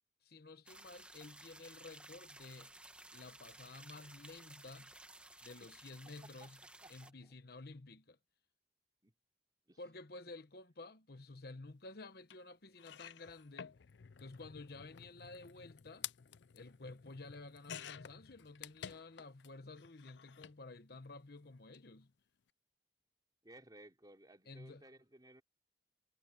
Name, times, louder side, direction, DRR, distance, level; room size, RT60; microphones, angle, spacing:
voice 1, 0.2-2.7 3.1-4.9 5.4-6.6 6.9-8.2 9.8-13.8 14.2-16.1 16.5-22.1 24.5-24.8, left 3 dB, 60° left, 1.1 m, -52 dB
sound 1, 0.7-7.1, right 2 dB, 5° right, 1.4 m, -56 dB
voice 2, 6.0-7.3 9.0-9.1 9.7-9.8 23.4-25.4, right 1 dB, 20° right, 3.3 m, -59 dB
sound 2, 12.3-12.4 12.8-19.5 19.8-20.6 21.6-21.8 22.0-22.1, left 9 dB, 80° left, 0.5 m, -51 dB
head